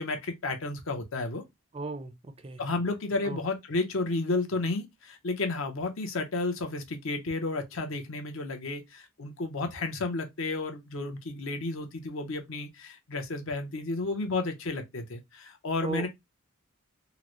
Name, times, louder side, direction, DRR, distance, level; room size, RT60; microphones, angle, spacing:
voice 1, 0.0-1.4 2.6-16.1, left 3 dB, 70° left, 0.7 m, -32 dB
voice 2, 1.7-2.6 3.2-3.4 15.8-16.1, right 3 dB, 25° right, 0.4 m, -36 dB
3.8 x 2.0 x 3.0 m
head